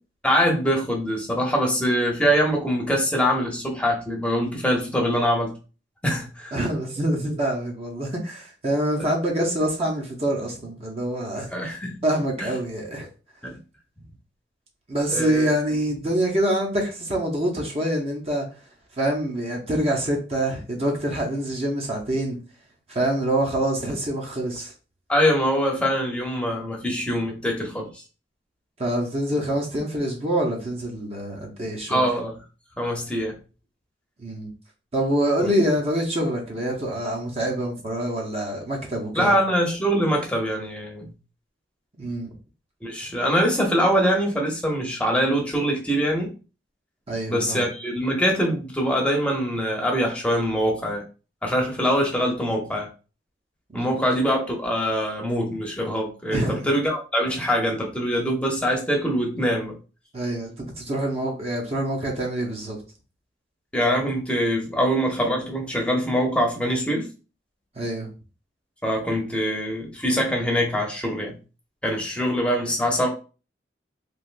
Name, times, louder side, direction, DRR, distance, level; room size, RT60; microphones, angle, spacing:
voice 1, 0.2-5.5 6.0-6.5 9.0-9.1 11.5-12.0 12.4-12.5 13.4-13.6 15.1-15.5 25.1-27.9 31.9-32.3 32.8-33.4 35.4-35.5 39.1-41.1 42.8-46.3 47.3-51.0 51.4-52.9 53.7-59.8 63.7-67.1 68.8-71.4 71.8-73.1, equal, 5° left, 0.7 m, -23 dB
voice 2, 6.5-11.8 12.0-13.1 14.9-18.5 19.0-22.4 22.9-24.7 28.8-32.1 34.2-34.5 34.9-39.4 42.0-42.3 47.1-47.6 53.7-53.9 56.3-56.7 60.1-62.8 67.8-68.1 72.2-72.3, right 1 dB, 35° right, 0.7 m, -26 dB
3.3 x 2.5 x 2.5 m
head